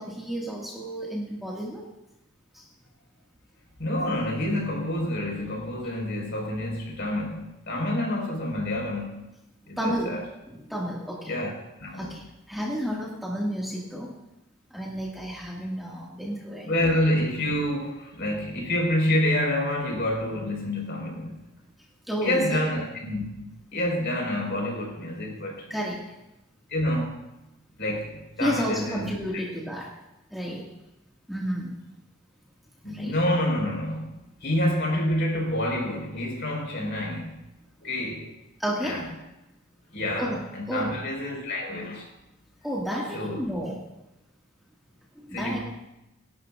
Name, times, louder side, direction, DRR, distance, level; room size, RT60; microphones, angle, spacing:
voice 1, 0.0-1.8 2.5-2.6 9.8-10.1 10.5-11.3 12.0-14.1 14.7-16.7 22.1-22.6 25.7-26.0 28.4-29.9 30.3-30.7 31.3-31.8 32.9-33.1 38.6-39.0 40.2-40.4 40.7-41.0 42.6-43.8 45.2-45.6, equal, ahead, 1.9 m, -31 dB
voice 2, 3.8-9.3 9.7-10.2 11.3-11.5 11.8-12.2 16.6-21.4 22.2-25.7 26.7-27.2 27.8-29.4 32.8-34.1 34.4-37.4 37.8-38.3 38.8-39.1 39.9-42.1 43.1-43.4 45.3-45.6, left 1 dB, 55° left, 4.9 m, -28 dB
26.0 x 12.0 x 2.5 m
head